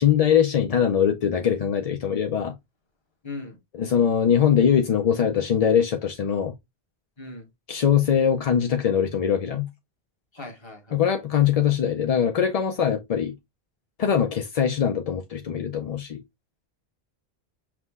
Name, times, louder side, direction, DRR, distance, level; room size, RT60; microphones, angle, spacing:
voice 1, 0.0-2.5 3.7-6.5 7.7-9.7 10.9-13.3 14.0-16.2, left 8 dB, 55° left, 0.4 m, -22 dB
voice 2, 3.2-3.6 7.2-7.5 10.3-11.2, left 2 dB, 25° left, 1.1 m, -39 dB
5.9 x 2.1 x 3.4 m
omnidirectional pair, 1.1 m